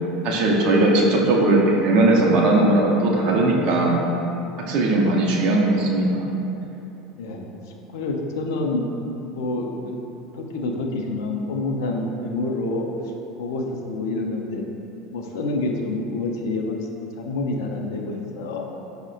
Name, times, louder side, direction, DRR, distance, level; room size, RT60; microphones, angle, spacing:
voice 1, 0.2-4.0 4.7-6.2, right 2 dB, 50° right, -1 dB, 0.5 m, -18 dB
voice 2, 7.9-8.8 9.3-10.0 10.3-12.9 13.4-14.6 15.1-18.6, left 2 dB, 65° left, 2 dB, 0.3 m, -27 dB
5.3 x 2.1 x 2.5 m, 3.0 s
figure-of-eight pair, 75°, 2 cm